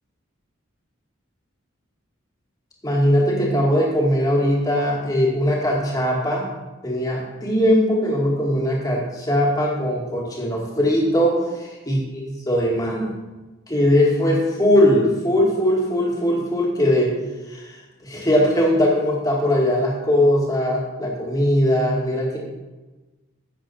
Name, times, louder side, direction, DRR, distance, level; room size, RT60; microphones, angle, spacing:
voice 1, 2.8-6.5 6.8-12.0 12.5-13.1 13.7-17.1 17.5-17.7 18.0-22.4, equal, 15° left, -2 dB, 2.2 m, -20 dB
11.0 x 8.2 x 4.5 m, 1.2 s
head